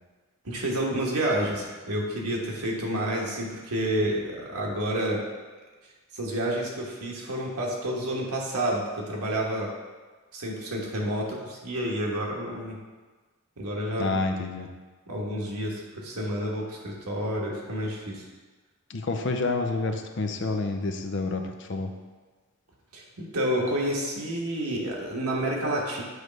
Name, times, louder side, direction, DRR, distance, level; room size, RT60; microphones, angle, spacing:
voice 1, 0.4-5.2 6.1-9.7 10.3-12.8 13.6-14.2 15.1-18.2 22.9-26.0, right 1 dB, 90° right, -2 dB, 1.4 m, -29 dB
voice 2, 14.0-14.7 18.9-21.9, left 3 dB, 55° left, 5 dB, 0.5 m, -28 dB
7.9 x 3.2 x 5.2 m, 1.3 s
head